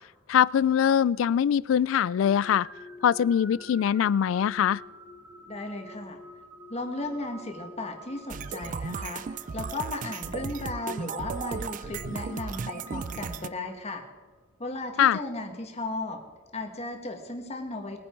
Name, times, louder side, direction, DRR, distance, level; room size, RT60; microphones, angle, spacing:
voice 1, 0.3-2.7 3.0-4.8 15.0-15.2, left 9 dB, 75° left, 23 dB, 0.3 m, -22 dB
sound 1, 2.2-14.2, left 1 dB, 10° right, 1.1 m, -48 dB
voice 2, 5.5-6.2 6.7-14.0 14.6-16.2 16.5-18.0, left 2 dB, 35° left, 4 dB, 1.8 m, -35 dB
sound 2, 8.3-13.5, right 5 dB, 40° right, 0.3 m, -35 dB
21.0 x 9.6 x 4.6 m, 1.4 s
head